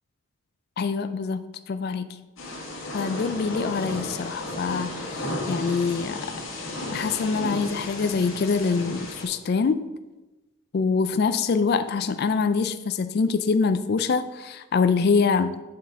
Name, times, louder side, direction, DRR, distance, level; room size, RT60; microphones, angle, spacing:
voice 1, 0.8-2.2 2.9-5.2 5.5-6.3 6.9-9.9 10.7-15.6, left 5 dB, 50° left, 10 dB, 0.3 m, -25 dB
Thunder / Rain, 2.4-9.2, left 1 dB, 75° left, 1.8 m, -33 dB
7.5 x 6.5 x 3.6 m, 1.1 s
head